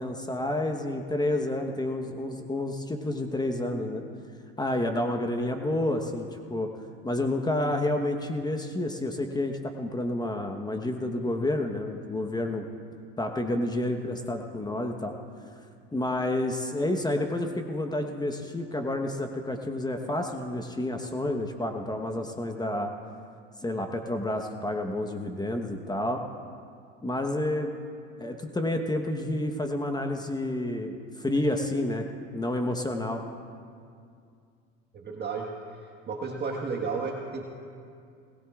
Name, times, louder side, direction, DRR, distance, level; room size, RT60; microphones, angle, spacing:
voice 1, 0.0-4.0 4.6-6.7 7.0-12.7 13.2-15.2 15.9-22.9 23.6-26.2 27.0-27.7 28.2-32.1 32.3-33.2, left 1 dB, 15° left, 4 dB, 1.1 m, -29 dB
voice 2, 34.9-35.6 36.1-37.4, right 4 dB, 35° right, 0 dB, 1.5 m, -32 dB
20.5 x 18.5 x 2.4 m, 2.3 s
supercardioid pair, 85°, 29 cm